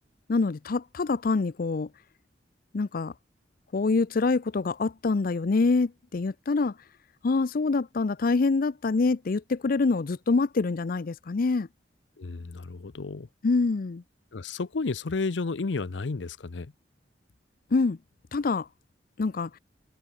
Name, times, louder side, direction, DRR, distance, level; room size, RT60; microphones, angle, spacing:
voice 1, 0.3-1.9 2.7-3.1 3.7-6.7 7.2-11.7 13.4-14.0 17.7-18.0 18.3-18.7 19.2-19.5, left 3 dB, 50° left, 0.5 m, -25 dB
voice 2, 12.2-13.3 14.3-16.7, left 3 dB, 90° left, 0.7 m, -32 dB
head